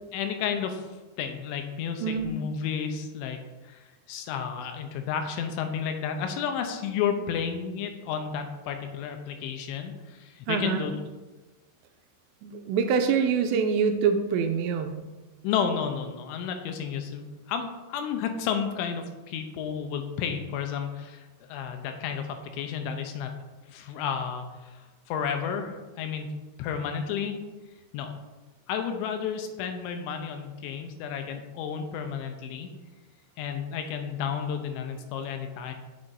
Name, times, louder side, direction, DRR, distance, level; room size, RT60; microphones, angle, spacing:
voice 1, 0.1-0.9 1.2-10.9 15.4-23.3 23.7-26.3 26.6-27.4 27.9-28.1 28.7-32.7 33.4-35.7, left 7 dB, 90° left, 6 dB, 3.1 m, -32 dB
voice 2, 2.0-2.4 10.5-10.9 12.4-15.0, right 6 dB, 85° right, 6 dB, 2.7 m, -25 dB
9.3 x 6.3 x 2.6 m, 1.2 s
omnidirectional pair, 5.2 m